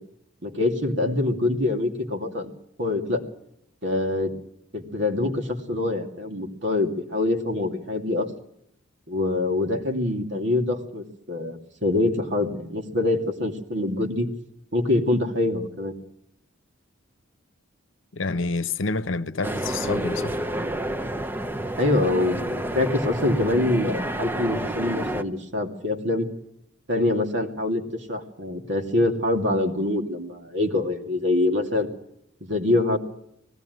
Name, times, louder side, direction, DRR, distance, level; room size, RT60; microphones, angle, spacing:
voice 1, 0.4-2.5 2.8-3.2 3.8-4.3 4.7-8.3 9.1-14.3 14.7-15.9 21.8-26.3 26.9-31.9 32.4-33.0, left 2 dB, 60° right, 2.6 m, -25 dB
voice 2, 18.1-20.4, left 3 dB, 70° left, 0.9 m, -28 dB
sound 1, 19.4-25.2, right 1 dB, 10° right, 0.8 m, -29 dB
20.0 x 16.0 x 9.4 m
head